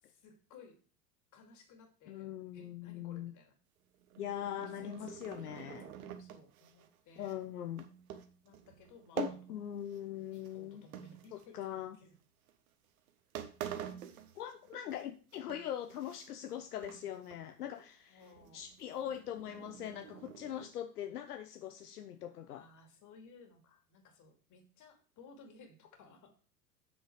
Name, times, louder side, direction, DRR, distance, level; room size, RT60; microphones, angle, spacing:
voice 1, 0.0-0.8 1.3-3.6 4.7-7.4 8.4-9.6 10.2-12.1 18.1-18.6 22.5-26.4, left 4 dB, 40° left, 2.7 m, -59 dB
voice 2, 2.1-3.3 4.2-5.8 7.2-7.8 9.2-10.9 11.3-12.0 14.3-18.2 18.5-22.7, left 11 dB, 70° left, 0.9 m, -41 dB
sound 1, 3.9-10.1 10.3-11.8 12.5-12.7 13.1-13.2 13.4-15.0 15.3-16.6 16.8-17.4 17.7-17.8 18.2-20.7, right 10 dB, 60° right, 1.4 m, -47 dB
8.0 x 6.5 x 4.9 m
figure-of-eight pair, 90°, 47 cm